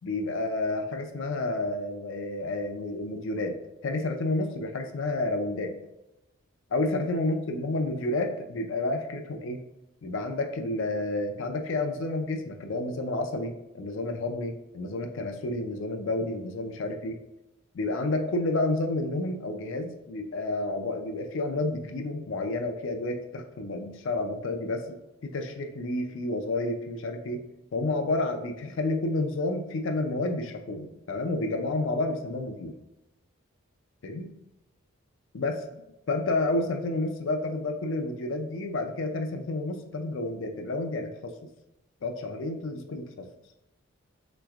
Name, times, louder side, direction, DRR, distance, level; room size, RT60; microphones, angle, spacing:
voice 1, 0.0-3.6 3.8-5.7 6.7-9.6 10.0-17.2 17.7-27.4 27.7-32.7 34.0-34.3 35.3-35.8 36.1-41.3 42.0-43.3, left 2 dB, 60° left, 5 dB, 0.4 m, -30 dB
3.2 x 3.0 x 2.4 m, 0.91 s
head